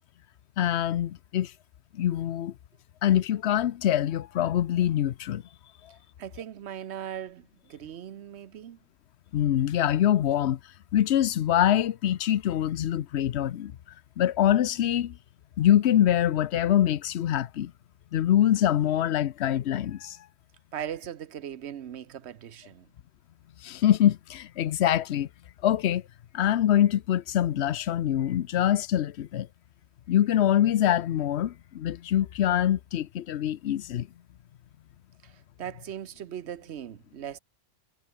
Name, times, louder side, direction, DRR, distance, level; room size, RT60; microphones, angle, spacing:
voice 1, 0.6-1.5 1.9-2.5 3.0-5.4 9.3-10.6 10.9-13.7 14.2-15.2 15.6-17.7 18.1-20.2 23.6-25.3 25.6-26.0 26.3-29.5 30.1-34.1, left 11 dB, 65° left, 0.9 m, -24 dB
voice 2, 6.2-8.8 20.7-22.9 35.2-37.4, right 10 dB, 65° right, 1.0 m, -39 dB
omnidirectional pair, 1.3 m